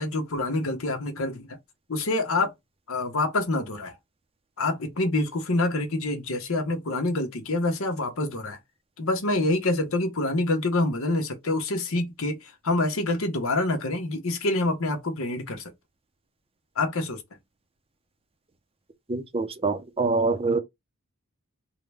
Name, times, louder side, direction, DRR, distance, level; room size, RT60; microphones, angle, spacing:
voice 1, 0.0-1.6 1.9-2.5 2.9-4.0 4.6-8.6 9.0-15.7 16.8-17.2, left 2 dB, 70° left, 1.0 m, -26 dB
voice 2, 19.1-20.6, right 3 dB, 25° right, 0.6 m, -25 dB
3.7 x 2.2 x 3.4 m
head